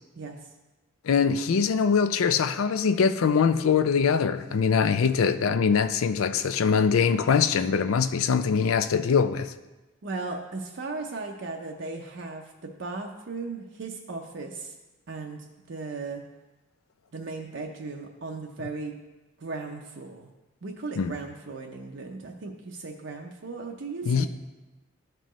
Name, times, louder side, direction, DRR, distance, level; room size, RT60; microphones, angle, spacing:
voice 1, 1.0-9.5 21.0-21.1 24.1-24.3, left 6 dB, 90° left, 0.4 m, -23 dB
voice 2, 10.0-14.7 15.1-16.2 17.1-18.9 19.4-20.3 20.6-24.3, right 3 dB, 60° right, 0.6 m, -37 dB
13.0 x 4.5 x 3.0 m
head